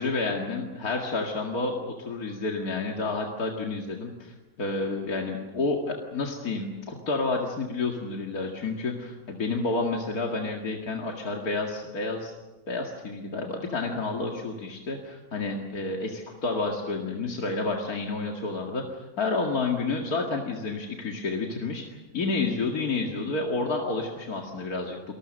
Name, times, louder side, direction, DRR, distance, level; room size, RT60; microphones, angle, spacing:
voice 1, 0.0-12.3 12.7-25.0, left 3 dB, 80° left, 1 dB, 2.6 m, -30 dB
29.0 x 21.0 x 6.6 m, 1.1 s
omnidirectional pair, 1.6 m